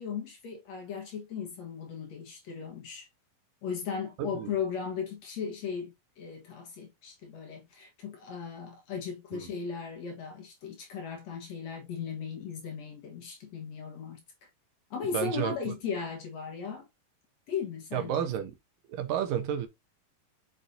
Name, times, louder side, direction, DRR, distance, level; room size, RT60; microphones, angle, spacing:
voice 1, 0.0-3.1 3.6-14.2 14.9-16.9 17.5-18.2, left 6 dB, 55° left, 2.3 m, -37 dB
voice 2, 4.2-4.5 9.3-9.5 15.1-15.7 17.9-18.5 18.9-19.7, right 9 dB, 75° right, 2.6 m, -31 dB
6.8 x 6.0 x 2.7 m
omnidirectional pair, 4.1 m